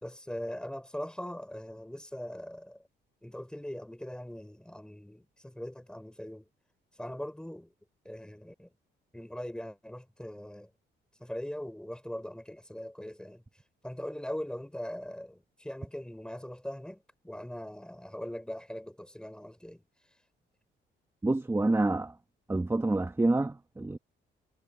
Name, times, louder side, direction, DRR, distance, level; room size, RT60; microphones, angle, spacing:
voice 1, 0.0-2.8 3.2-6.5 7.0-7.7 8.0-8.7 9.1-10.7 11.2-13.4 13.8-19.8, left 1 dB, 5° left, 3.9 m, -41 dB
voice 2, 21.2-22.2 22.5-24.0, right 2 dB, 15° right, 1.4 m, -27 dB
cardioid pair, 90°, 20 cm